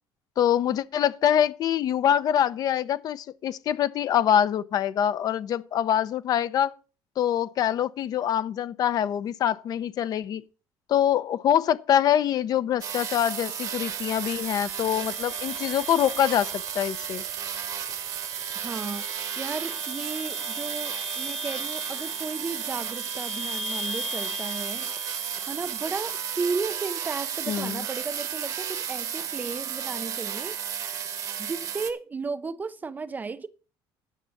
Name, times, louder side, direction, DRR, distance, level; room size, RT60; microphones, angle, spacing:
voice 1, 0.4-6.7 7.2-10.4 10.9-17.2 27.5-27.8, left 10 dB, 50° left, 0.7 m, -24 dB
sound 1, 12.8-31.9, right 8 dB, 45° right, 1.4 m, -33 dB
sound 2, 13.7-26.7, left 1 dB, ahead, 0.9 m, -41 dB
voice 2, 18.6-24.9 25.5-30.6 31.4-33.5, right 4 dB, 20° right, 0.5 m, -34 dB
10.0 x 6.8 x 6.5 m
cardioid pair, 140°, 9 cm